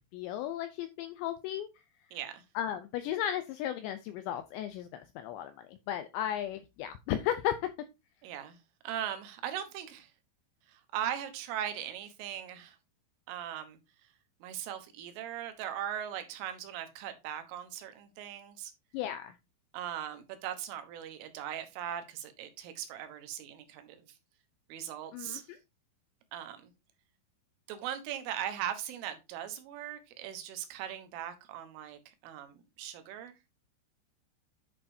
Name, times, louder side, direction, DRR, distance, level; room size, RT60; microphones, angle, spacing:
voice 1, 0.0-1.7 2.6-7.7 18.9-19.3 25.1-25.6, left 11 dB, 85° left, 2.5 m, -35 dB
voice 2, 2.1-2.5 8.2-8.6 8.8-10.1 10.7-12.8 13.3-14.1 14.4-18.7 19.7-24.2 24.7-25.5 26.3-26.7 27.7-33.4, right 10 dB, 80° right, 3.6 m, -39 dB
10.5 x 6.9 x 2.7 m
omnidirectional pair, 5.8 m